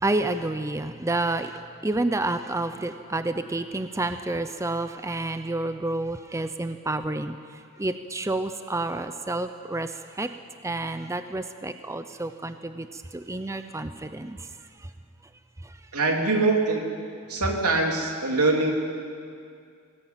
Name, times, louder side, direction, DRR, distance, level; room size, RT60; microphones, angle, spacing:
voice 1, 0.0-7.4 7.8-10.4 10.6-14.5 14.8-14.9 15.6-15.8, right 2 dB, 15° right, 9 dB, 0.6 m, -29 dB
voice 2, 15.9-16.9 17.3-18.7, right 3 dB, 85° right, 1 dB, 3.1 m, -23 dB
21.0 x 18.0 x 9.0 m, 2.3 s
head